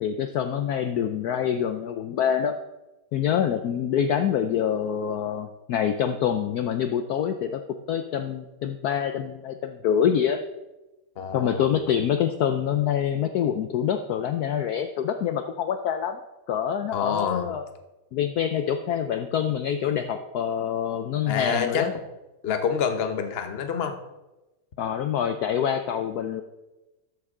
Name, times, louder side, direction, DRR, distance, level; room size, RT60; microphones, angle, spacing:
voice 1, 0.0-2.5 3.1-7.6 7.9-10.4 11.3-16.2 16.5-17.6 18.1-21.9 24.8-26.4, left 8 dB, 75° left, 8 dB, 0.8 m, -26 dB
voice 2, 11.2-11.6 16.9-17.5 21.3-21.9 22.4-24.0, left 6 dB, 45° left, 7 dB, 0.8 m, -27 dB
13.0 x 9.9 x 3.7 m, 1.0 s
omnidirectional pair, 2.3 m